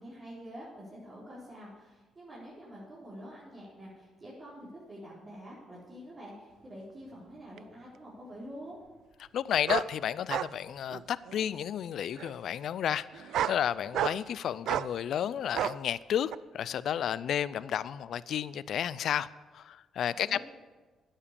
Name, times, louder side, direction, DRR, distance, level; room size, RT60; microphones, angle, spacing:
voice 1, 0.0-8.8 20.2-20.4, equal, 30° right, 4.5 m, -47 dB
sound 1, 7.6-7.7 9.7-9.9 10.3-10.5 10.9-11.4 12.2-12.3 13.1-13.6 13.9-14.3 14.7-14.9 15.5-15.8 16.3-16.4, right 10 dB, 75° right, 0.3 m, -31 dB
voice 2, 9.3-19.3 19.5-20.4, left 9 dB, 70° left, 0.4 m, -32 dB
10.5 x 10.0 x 6.9 m
cardioid pair, 90°, 0 cm